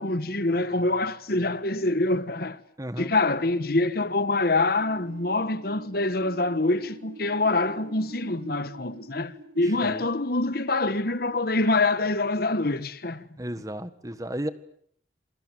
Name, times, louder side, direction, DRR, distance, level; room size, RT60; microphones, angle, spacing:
voice 1, 0.0-2.6 3.0-13.2, left 2 dB, 50° left, 1.4 m, -25 dB
voice 2, 2.8-3.1 9.6-10.0 13.4-14.5, right 1 dB, 20° right, 1.6 m, -34 dB
sound 1, 4.8-11.6, right 2 dB, 70° right, 5.3 m, -47 dB
28.0 x 22.5 x 9.2 m
head